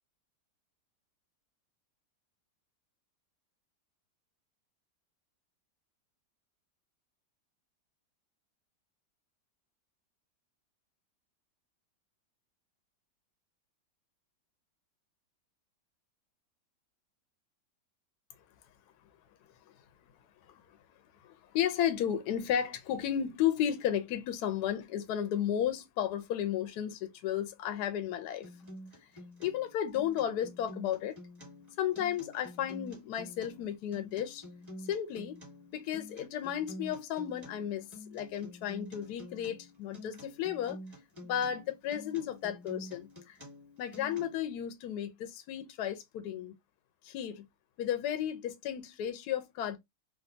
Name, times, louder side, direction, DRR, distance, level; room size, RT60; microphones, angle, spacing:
voice 1, 21.2-28.5 29.4-31.2 31.8-34.4 34.9-35.4 35.7-40.8 41.2-43.4 43.8-46.5 47.0-47.5 47.8-49.8, left 10 dB, 70° left, 1.1 m, -33 dB
Acoustic guitar, 28.4-44.4, left 1 dB, 15° right, 1.4 m, -48 dB
3.4 x 2.3 x 2.5 m
omnidirectional pair, 1.9 m